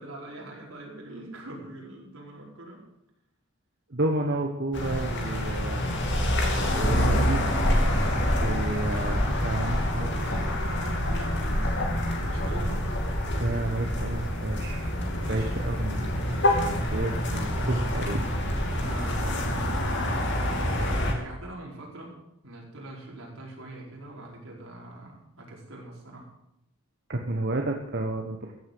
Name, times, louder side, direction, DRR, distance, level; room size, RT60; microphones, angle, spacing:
voice 1, 0.0-2.9 10.2-12.8 14.9-15.6 18.8-22.2 22.4-26.3, right 1 dB, 85° right, -2 dB, 5.0 m, -43 dB
voice 2, 3.9-5.9 6.8-7.6 8.4-10.1 13.4-14.9 15.3-16.2 16.7-18.2 27.1-28.5, right 2 dB, 55° right, 2 dB, 1.3 m, -31 dB
sound 1, 4.7-21.1, equal, 60° left, 2.8 m, -26 dB
15.0 x 8.2 x 7.8 m, 0.84 s
head